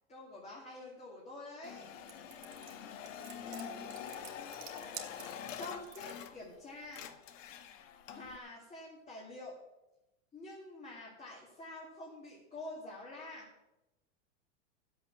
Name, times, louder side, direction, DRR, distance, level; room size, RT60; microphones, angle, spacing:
voice 1, 0.1-1.9 3.5-3.9 5.6-7.0 8.1-9.6 10.3-13.5, left 2 dB, 15° left, -4 dB, 2.8 m, -47 dB
sound 1, 1.6-6.6 6.8-8.4, left 8 dB, 75° left, 1.4 m, -46 dB
sound 2, 2.1-6.2, right 9 dB, 80° right, 2.6 m, -49 dB
13.0 x 7.9 x 7.2 m, 0.97 s
supercardioid pair, 150°, 39 cm